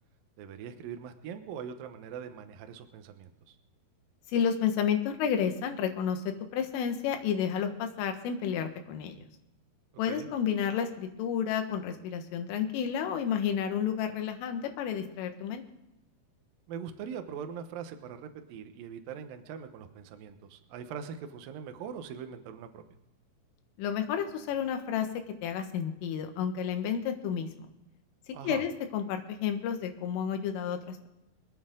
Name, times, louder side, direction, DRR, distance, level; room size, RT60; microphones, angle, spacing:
voice 1, 0.4-3.6 10.1-10.3 16.7-22.8 28.3-28.6, right 7 dB, 80° right, 7 dB, 2.0 m, -42 dB
voice 2, 4.3-9.2 10.0-15.6 23.8-25.1 25.4-27.5 28.4-31.1, left 8 dB, 85° left, 6 dB, 4.0 m, -31 dB
25.5 x 9.5 x 3.8 m, 0.91 s
omnidirectional pair, 5.6 m